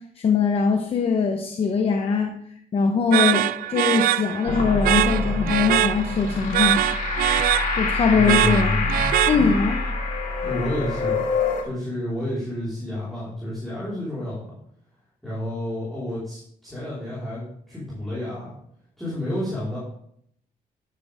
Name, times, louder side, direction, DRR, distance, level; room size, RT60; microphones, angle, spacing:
voice 1, 0.2-2.4 2.7-6.8 7.7-8.8 9.3-9.8, left 5 dB, 40° left, 4 dB, 1.2 m, -22 dB
sound 1, 3.1-9.8, right 13 dB, 75° right, 0.5 m, -23 dB
sound 2, 4.5-11.6, left 3 dB, 60° left, 3.1 m, -26 dB
voice 2, 8.1-9.1 10.4-11.2 11.6-14.5 15.2-18.5 19.0-19.8, left 1 dB, ahead, -10 dB, 5.1 m, -29 dB
13.5 x 10.0 x 3.8 m, 0.69 s
cardioid pair, 165°, 15 cm